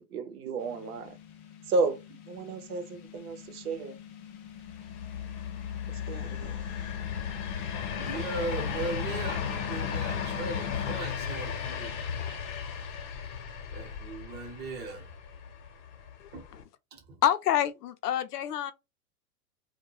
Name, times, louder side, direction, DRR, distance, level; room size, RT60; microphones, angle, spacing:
voice 1, 0.1-1.2 1.7-4.0 6.1-6.5, right 3 dB, 70° right, 0.8 m, -32 dB
sound 1, 0.6-11.0, left 9 dB, 30° left, 0.5 m, -43 dB
sound 2, 4.7-16.6, left 7 dB, 50° left, 0.9 m, -36 dB
voice 2, 8.0-12.0 13.7-15.1 16.3-16.4 16.9-17.2, right 3 dB, 20° right, 0.9 m, -38 dB
voice 3, 17.2-18.7, left 11 dB, 90° left, 0.6 m, -27 dB
2.3 x 2.2 x 3.1 m
hypercardioid pair, 125°, 45 cm